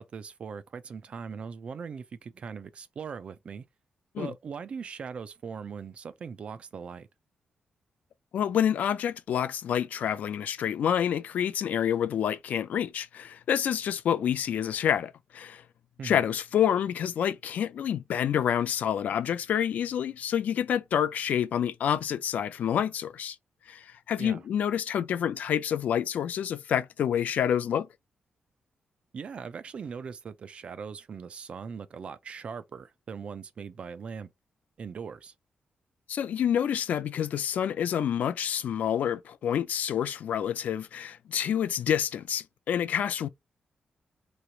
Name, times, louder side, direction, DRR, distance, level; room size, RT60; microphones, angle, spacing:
voice 1, 0.0-3.6 4.2-7.1 16.0-16.2 24.2-24.4 29.1-34.3 34.8-35.3, right 6 dB, 45° right, 0.4 m, -40 dB
voice 2, 8.3-15.6 16.0-23.4 23.7-27.9 36.1-43.3, left 9 dB, 75° left, 0.3 m, -28 dB
3.1 x 2.4 x 2.7 m
wide cardioid pair, 165°, 3 cm